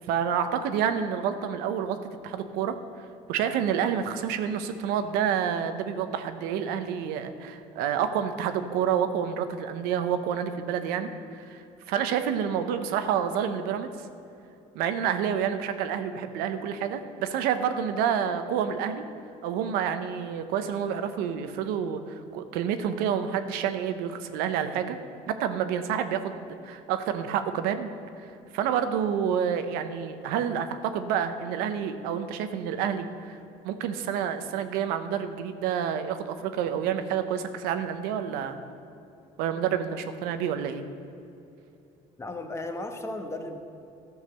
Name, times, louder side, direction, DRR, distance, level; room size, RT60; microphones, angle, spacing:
voice 1, 0.1-2.0 2.2-2.7 3.3-13.9 14.7-19.0 19.4-25.0 25.4-26.4 26.6-27.9 28.2-33.4 33.6-38.6 39.4-40.8, right 8 dB, 80° right, 9 dB, 0.9 m, -28 dB
voice 2, 42.2-43.6, left 2 dB, 20° left, 5 dB, 1.2 m, -35 dB
13.0 x 6.5 x 6.5 m, 2.8 s
supercardioid pair, 95°, 15 cm